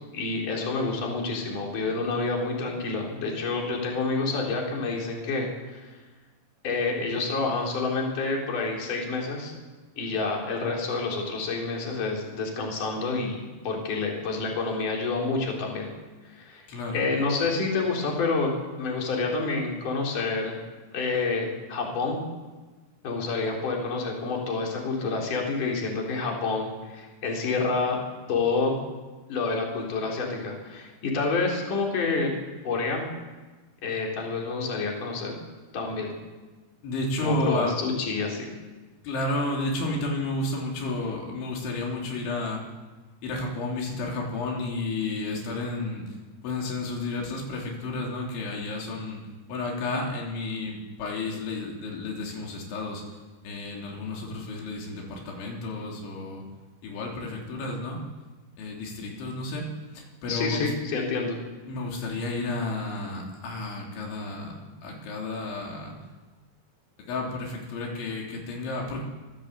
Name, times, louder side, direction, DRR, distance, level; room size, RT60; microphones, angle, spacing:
voice 1, 0.1-5.9 6.6-9.5 10.0-13.4 13.6-15.9 16.3-16.6 16.9-18.5 18.8-20.6 20.9-22.2 23.0-28.0 28.3-28.8 29.3-32.3 32.6-33.1 33.8-35.3 35.7-36.1 37.2-38.5 60.3-61.4, left 3 dB, 45° left, -1 dB, 5.5 m, -28 dB
voice 2, 16.7-17.1 36.8-37.8 39.0-42.6 43.2-46.1 46.4-49.2 49.5-53.0 53.4-56.4 56.8-58.0 58.6-59.7 59.9-60.7 61.1-61.2 61.7-65.9 67.1-69.0, left 2 dB, 85° left, -1 dB, 5.8 m, -31 dB
26.5 x 16.0 x 8.3 m, 1.3 s
omnidirectional pair, 5.2 m